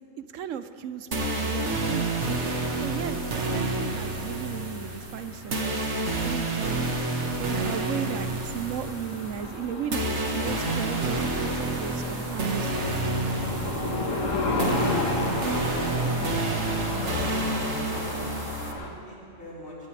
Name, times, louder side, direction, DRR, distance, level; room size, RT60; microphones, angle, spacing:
voice 1, 0.2-6.9 7.4-12.8 16.0-16.4, right 8 dB, 80° right, 11 dB, 1.0 m, -36 dB
sound 1, 1.1-18.7, right 2 dB, 60° right, 1.8 m, -29 dB
sound 2, 1.4-18.9, left 2 dB, 80° left, 1.9 m, -34 dB
voice 2, 17.7-19.9, left 1 dB, 55° left, -7 dB, 4.9 m, -46 dB
21.0 x 19.0 x 3.4 m, 2.9 s
omnidirectional pair, 1.3 m